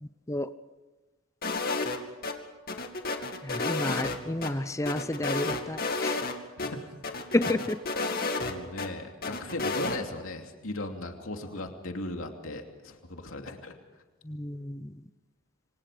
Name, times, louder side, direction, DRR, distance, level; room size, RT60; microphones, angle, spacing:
sound 1, 1.4-2.3 2.7-4.5 4.9-6.3 6.6-6.7 7.0-8.9 9.2-10.0, left 3 dB, 45° left, 2.5 m, -31 dB
voice 1, 3.4-6.2 7.3-7.8 14.3-14.9, left 1 dB, 15° left, 12 dB, 0.7 m, -30 dB
voice 2, 6.6-6.9 8.4-13.7, left 2 dB, 75° left, 3 dB, 2.8 m, -37 dB
27.0 x 26.5 x 5.1 m, 1.2 s
head